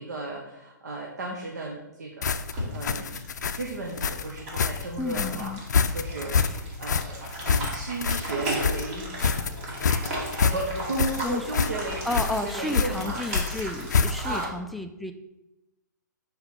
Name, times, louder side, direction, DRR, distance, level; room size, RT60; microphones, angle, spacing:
voice 1, 0.0-3.2 3.5-9.6 10.0-13.2 14.2-14.5, right 2 dB, 55° right, 0 dB, 1.1 m, -35 dB
sound 1, 2.2-14.4, left 5 dB, 60° left, 0.5 m, -27 dB
sound 2, 2.5-14.5, right 1 dB, 40° right, 2.2 m, -36 dB
voice 2, 5.0-5.6 11.2-11.4 12.0-15.1, left 2 dB, ahead, 6 dB, 0.3 m, -32 dB
5.7 x 4.3 x 5.7 m, 0.97 s
figure-of-eight pair, 120°, 10 cm